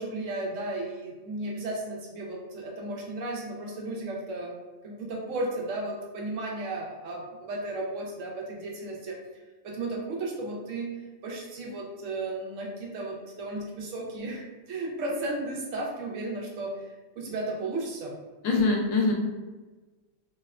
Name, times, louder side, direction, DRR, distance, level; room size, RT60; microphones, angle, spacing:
voice 1, 0.0-4.5 4.8-9.2 9.6-10.9 11.2-18.2, right 2 dB, 80° right, -1 dB, 1.0 m, -34 dB
voice 2, 18.4-19.1, left 3 dB, 85° left, -1 dB, 1.0 m, -23 dB
2.8 x 2.1 x 2.3 m, 1.2 s
omnidirectional pair, 1.3 m